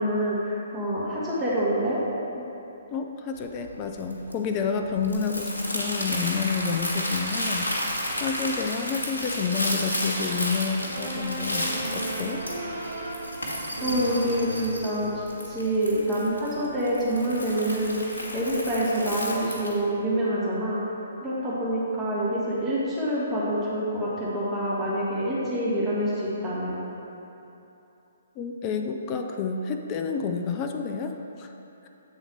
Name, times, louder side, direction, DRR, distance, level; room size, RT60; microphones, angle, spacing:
voice 1, 0.0-2.0 13.8-20.8 21.2-26.8, right 1 dB, 10° right, -9 dB, 1.4 m, -26 dB
voice 2, 2.9-12.4 28.4-31.5, left 5 dB, 25° left, 4 dB, 0.4 m, -29 dB
Crumpling crinkling, 3.3-19.8, left 1 dB, 75° left, 1.2 m, -32 dB
sound 1, 10.9-15.5, right 1 dB, 75° right, 1.5 m, -35 dB
8.2 x 3.9 x 4.4 m, 2.9 s
figure-of-eight pair, 130°, 0 cm